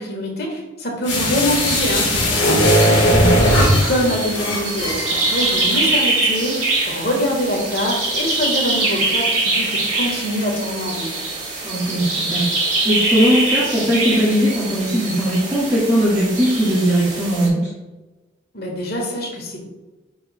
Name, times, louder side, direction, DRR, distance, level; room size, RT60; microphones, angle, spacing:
voice 1, 0.0-11.1 18.5-19.7, equal, 55° left, 0 dB, 1.5 m, -24 dB
sound 1, 1.1-6.1 6.4-6.5, equal, 80° left, 1.6 m, -18 dB
sound 2, 1.1-17.5, right 2 dB, 35° right, 1.9 m, -24 dB
voice 2, 11.6-12.4 12.8-17.7, equal, 15° right, -9 dB, 1.6 m, -19 dB
9.4 x 4.5 x 2.2 m, 1.1 s
head